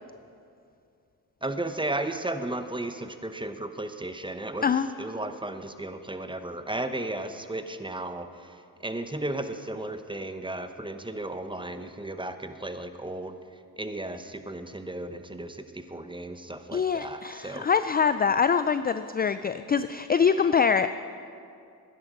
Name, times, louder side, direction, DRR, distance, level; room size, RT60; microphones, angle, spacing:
voice 1, 1.4-4.7 5.0-8.6 8.8-13.4 13.8-17.7, right 2 dB, 10° right, 9 dB, 0.9 m, -34 dB
voice 2, 16.7-20.9, left 6 dB, 25° left, 12 dB, 0.3 m, -24 dB
11.5 x 10.5 x 5.4 m, 2.4 s
supercardioid pair, 50°, 40 cm